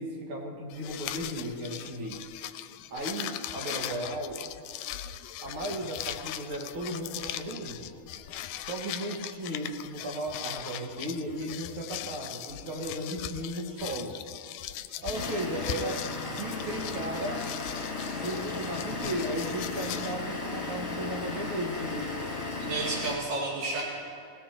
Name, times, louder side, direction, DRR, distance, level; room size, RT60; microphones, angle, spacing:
voice 1, 0.0-2.2 2.9-4.4 5.4-7.9 8.6-14.2 15.0-16.1 16.4-17.5 18.2-22.3, right 1 dB, 50° right, 0 dB, 2.3 m, -35 dB
sound 1, 0.7-20.1, left 12 dB, 85° left, 2.0 m, -40 dB
Vehicle / Engine, 15.1-23.1, left 3 dB, 30° left, 2.4 m, -35 dB
voice 2, 22.6-23.8, right 3 dB, 85° right, -5 dB, 3.8 m, -31 dB
19.0 x 18.5 x 3.0 m, 2.4 s
omnidirectional pair, 3.5 m